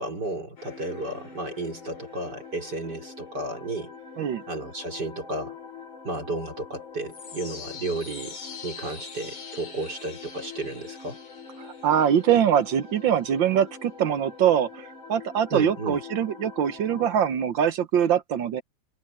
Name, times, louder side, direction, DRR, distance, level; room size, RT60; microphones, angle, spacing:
voice 1, 0.0-3.9 4.5-5.6 6.0-11.2 15.5-16.0, right 2 dB, 50° right, 4.8 m, -33 dB
sound 1, 0.6-17.2, left 6 dB, 65° left, 3.5 m, -43 dB
voice 2, 11.8-18.6, right 9 dB, 65° right, 1.6 m, -23 dB
omnidirectional pair, 2.4 m